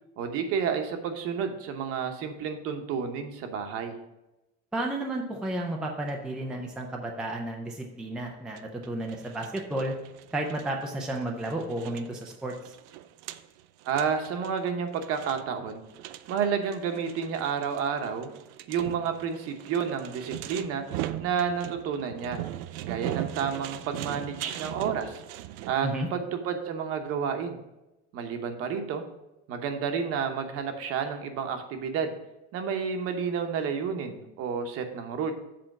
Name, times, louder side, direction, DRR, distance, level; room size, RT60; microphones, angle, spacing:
voice 1, 0.2-4.0 13.8-15.8 16.3-18.3 18.7-20.8 21.2-22.4 22.8-25.2 25.7-27.6 28.1-29.0 29.5-32.1 32.5-35.3, right 6 dB, 45° right, 6 dB, 1.0 m, -30 dB
voice 2, 4.7-10.0 10.3-12.6 25.8-26.1, right 1 dB, ahead, 1 dB, 0.4 m, -32 dB
sound 1, 8.6-25.8, right 13 dB, 70° right, 0.5 m, -40 dB
7.7 x 4.3 x 6.0 m, 0.96 s
cardioid pair, 165°, 32 cm